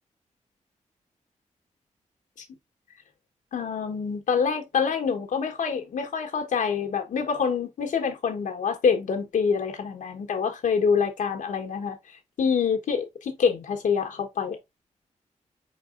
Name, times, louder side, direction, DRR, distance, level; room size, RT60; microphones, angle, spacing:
voice 1, 3.5-12.0 12.4-14.6, left 6 dB, 85° left, 1.2 m, -26 dB
4.8 x 4.1 x 2.5 m
wide cardioid pair, 105°, 13 cm